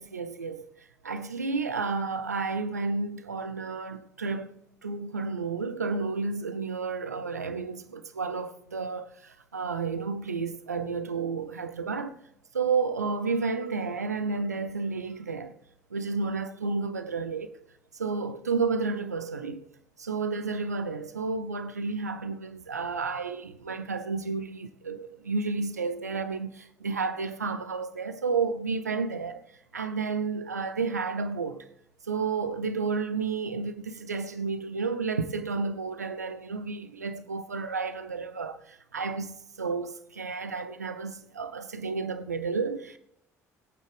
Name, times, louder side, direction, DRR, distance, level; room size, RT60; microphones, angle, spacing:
voice 1, 0.0-4.5 4.8-12.2 12.5-15.5 15.9-17.6 17.9-19.7 20.0-29.4 29.7-31.7 32.0-43.0, right 4 dB, 85° right, 0.7 m, -31 dB
20.5 x 8.8 x 3.5 m
figure-of-eight pair, 55°, 9 cm